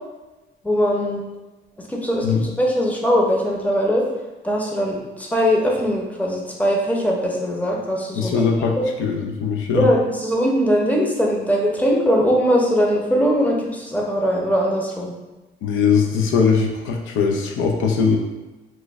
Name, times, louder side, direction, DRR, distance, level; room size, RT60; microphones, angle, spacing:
voice 1, 0.6-1.2 1.9-4.0 4.4-8.5 8.8-8.9 9.7-15.1, equal, 5° left, -2 dB, 0.7 m, -20 dB
voice 2, 8.1-9.9 15.6-18.2, left 5 dB, 85° left, 1 dB, 0.5 m, -20 dB
3.1 x 2.2 x 3.4 m, 1.1 s
cardioid pair, 90°, 20 cm